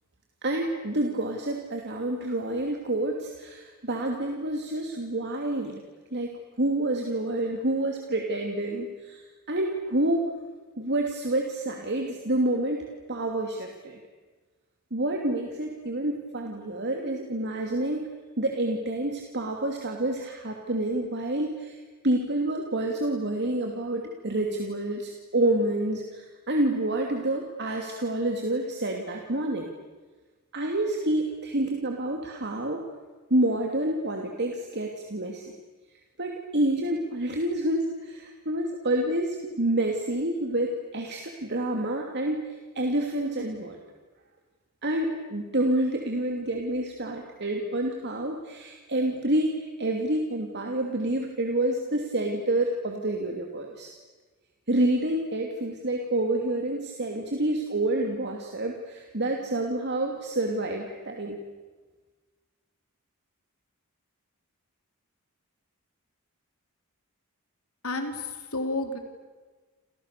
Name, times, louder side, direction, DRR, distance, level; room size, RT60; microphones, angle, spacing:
voice 1, 0.4-5.8 6.1-10.2 10.8-14.0 14.9-18.1 18.4-21.8 22.0-29.7 30.5-32.8 33.3-35.5 36.2-43.8 44.8-53.9 54.7-61.4, right 1 dB, 50° right, 2 dB, 2.8 m, -28 dB
voice 2, 67.8-69.0, left 2 dB, 75° left, 5 dB, 3.9 m, -31 dB
29.0 x 29.0 x 6.9 m, 1.3 s
head